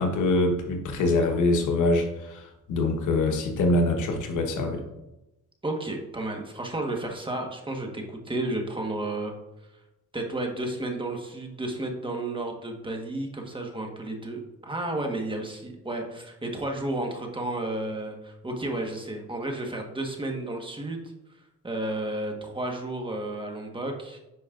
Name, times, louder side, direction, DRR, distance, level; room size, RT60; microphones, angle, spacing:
voice 1, 0.0-4.8, left 2 dB, 80° left, 3 dB, 1.3 m, -24 dB
voice 2, 5.6-9.3 10.1-21.1 21.6-24.2, right 2 dB, 15° right, 2 dB, 1.4 m, -32 dB
10.0 x 5.2 x 2.5 m, 0.94 s
cardioid pair, 90°, 30 cm